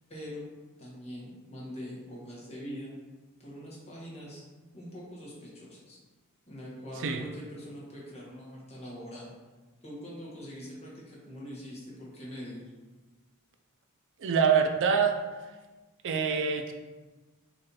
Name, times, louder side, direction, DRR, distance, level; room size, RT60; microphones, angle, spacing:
voice 1, 0.1-0.5 0.8-2.9 3.4-4.4 4.7-6.0 6.5-9.3 9.8-12.7, equal, 30° left, -5 dB, 1.3 m, -43 dB
voice 2, 14.2-15.2 16.0-16.7, right 6 dB, 60° right, 4 dB, 0.4 m, -25 dB
4.1 x 3.2 x 4.0 m, 1.3 s
head